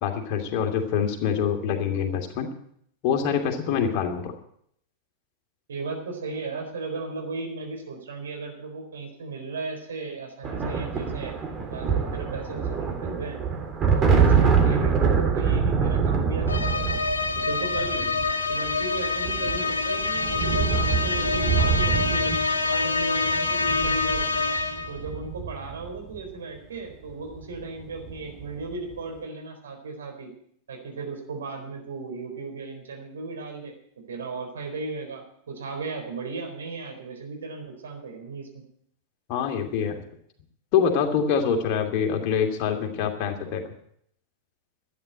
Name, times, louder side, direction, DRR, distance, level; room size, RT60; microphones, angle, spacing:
voice 1, 0.0-2.5 3.0-4.3 39.3-40.0 40.7-43.7, left 7 dB, 45° left, 3 dB, 2.6 m, -25 dB
voice 2, 5.7-11.3 11.7-13.4 13.8-17.0 17.3-18.1 18.5-22.3 22.6-24.5 24.9-30.3 30.7-33.7 34.1-38.6, right 4 dB, 65° right, 3 dB, 4.1 m, -36 dB
sound 1, 10.4-26.2 27.4-27.6 27.9-28.6, right 6 dB, 25° right, 3.1 m, -25 dB
sound 2, 16.5-25.0, left 3 dB, 75° left, 1.4 m, -26 dB
12.5 x 9.6 x 8.9 m, 0.68 s
figure-of-eight pair, 90°, 0 cm